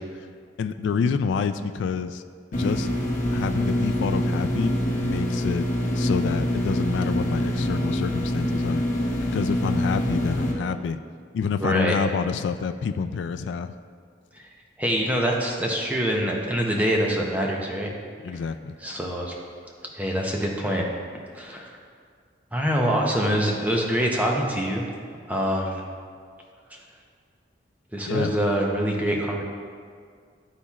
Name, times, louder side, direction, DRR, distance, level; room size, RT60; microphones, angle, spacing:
voice 1, 0.6-2.2 2.5-2.9 3.3-5.7 5.9-8.8 9.3-11.0 11.3-13.7 18.2-18.7 28.1-28.3, left 5 dB, 90° left, 10 dB, 0.3 m, -28 dB
sound 1, 2.5-10.5, equal, 45° left, 1.1 m, -25 dB
voice 2, 11.6-12.0 14.8-17.9 18.8-19.4 19.9-20.8 21.3-21.7 22.5-24.8 25.3-25.8 26.7-26.8 27.9-29.4, equal, 10° right, -1 dB, 0.7 m, -25 dB
11.5 x 4.2 x 2.4 m, 2.1 s
head